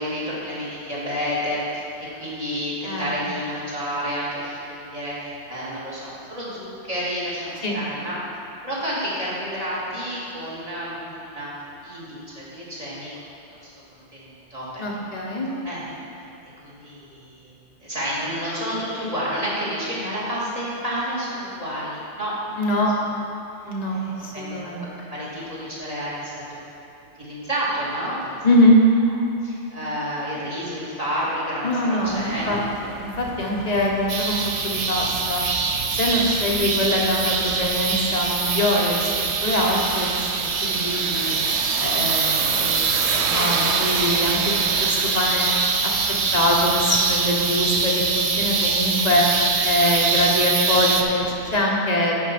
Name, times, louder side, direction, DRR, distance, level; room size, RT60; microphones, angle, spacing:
voice 1, 0.0-8.2 8.6-11.5 11.8-13.1 13.5-15.2 15.6-16.0 16.6-17.5 17.8-22.5 23.9-26.6 27.2-28.4 29.4-32.6 43.3-43.5, equal, 30° right, -8 dB, 2.3 m, -30 dB
voice 2, 2.8-3.2 7.6-7.8 14.8-15.5 22.6-22.9 23.7-25.1 28.4-28.8 31.6-35.4 36.0-39.1 39.4-44.5 44.8-45.5 45.8-45.9 46.3-49.2 49.6-52.2, left 1 dB, 35° left, -2 dB, 1.2 m, -23 dB
sound 1, 32.0-51.6, right 7 dB, 70° right, 0.8 m, -34 dB
sound 2, 34.1-51.0, right 4 dB, 50° right, 0.5 m, -23 dB
10.5 x 4.5 x 5.9 m, 2.9 s
omnidirectional pair, 1.2 m